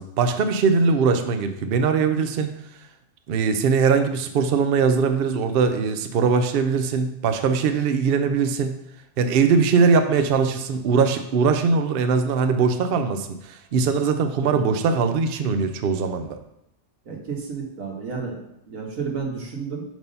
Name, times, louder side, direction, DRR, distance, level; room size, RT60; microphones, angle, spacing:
voice 1, 0.0-2.5 3.3-8.8 9.2-16.4, right 5 dB, 60° right, 8 dB, 0.7 m, -21 dB
voice 2, 17.0-18.4 18.7-19.8, right 5 dB, 85° right, 0 dB, 1.7 m, -31 dB
5.5 x 4.6 x 5.3 m, 0.80 s
omnidirectional pair, 1.3 m